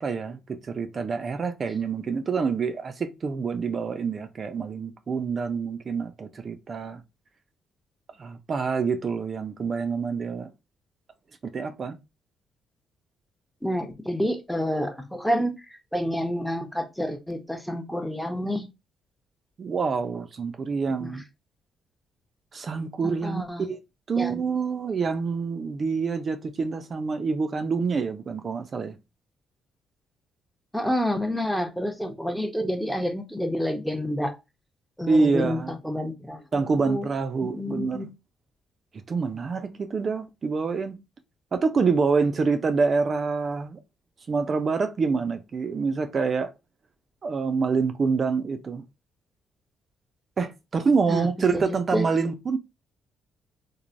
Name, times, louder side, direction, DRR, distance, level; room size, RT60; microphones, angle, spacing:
voice 1, 0.0-7.0 8.2-10.5 11.5-12.0 19.6-21.2 22.5-23.8 24.1-29.0 35.1-35.7 36.5-38.0 39.1-41.0 41.5-43.8 44.3-46.5 47.2-48.8 50.4-52.6, right 4 dB, 45° right, 0.4 m, -26 dB
voice 2, 13.6-15.5 15.9-18.7 21.0-21.1 23.0-23.7 24.2-24.4 30.7-34.3 35.0-37.1 37.4-38.1 51.1-51.6 51.9-52.0, equal, ahead, 0.6 m, -29 dB
3.1 x 2.0 x 2.5 m
cardioid pair, 90°, 0 cm